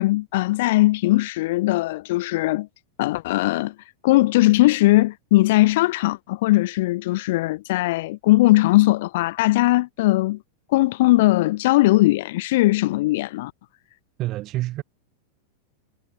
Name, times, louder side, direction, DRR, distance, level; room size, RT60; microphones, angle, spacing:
voice 1, 0.0-2.7 3.0-3.7 4.0-10.4 10.7-13.5, left 18 dB, 50° left, 0.4 m, -19 dB
voice 2, 14.2-14.8, right 16 dB, 35° right, 2.1 m, -27 dB
figure-of-eight pair, 90°, 0 cm